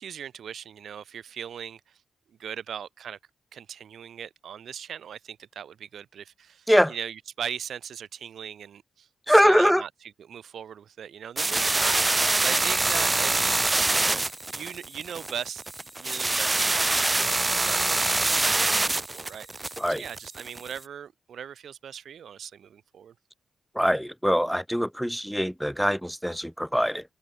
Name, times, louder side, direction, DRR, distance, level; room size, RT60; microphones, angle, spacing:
voice 1, 0.0-2.0 2.3-3.2 3.5-13.7 14.5-15.6 16.0-23.1, right 8 dB, 75° right, 1.9 m, -39 dB
voice 2, 9.3-9.8 19.8-20.0 23.7-27.0, equal, ahead, 0.8 m, -22 dB
sound 1, 11.4-20.8, right 2 dB, 20° right, 0.4 m, -25 dB
cardioid pair, 105°, 0 cm